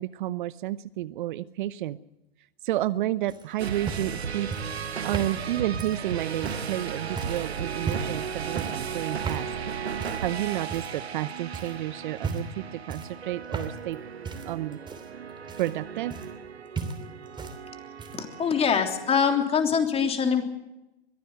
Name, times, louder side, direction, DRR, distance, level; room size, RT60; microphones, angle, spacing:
voice 1, 0.0-2.0 2.6-4.5 5.0-9.5 10.2-14.0 14.5-14.8 15.6-16.1, right 14 dB, 50° right, 17 dB, 0.8 m, -31 dB
sound 1, 3.3-6.7 7.2-7.4 7.8-8.2 8.6-8.9 9.2-9.5 10.0-10.3 10.7-11.2 11.5-11.8 12.2-12.6 12.9-13.9 14.2-16.5 16.7-17.6 17.8-18.3 19.3-19.4, right 4 dB, 15° right, 3.1 m, -35 dB
sound 2, 3.6-19.4, right 7 dB, 85° right, 1.2 m, -36 dB
voice 2, 18.1-20.5, left 6 dB, 20° left, 5 dB, 3.2 m, -24 dB
23.0 x 15.0 x 7.8 m, 0.93 s
hypercardioid pair, 110°, 31 cm